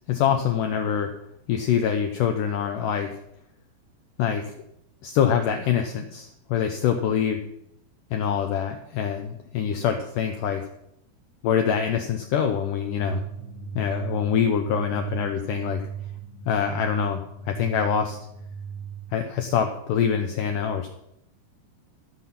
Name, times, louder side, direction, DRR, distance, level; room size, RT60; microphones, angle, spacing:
voice 1, 0.1-1.1 1.5-3.1 4.2-4.4 5.0-7.4 8.1-10.6 11.4-13.2 13.7-15.8 16.5-18.2 19.1-20.9, left 8 dB, 80° left, 5 dB, 1.9 m, -25 dB
sound 1, 13.0-19.2, right 6 dB, 25° left, 3.0 m, -36 dB
13.5 x 9.5 x 5.9 m, 0.78 s
omnidirectional pair, 4.9 m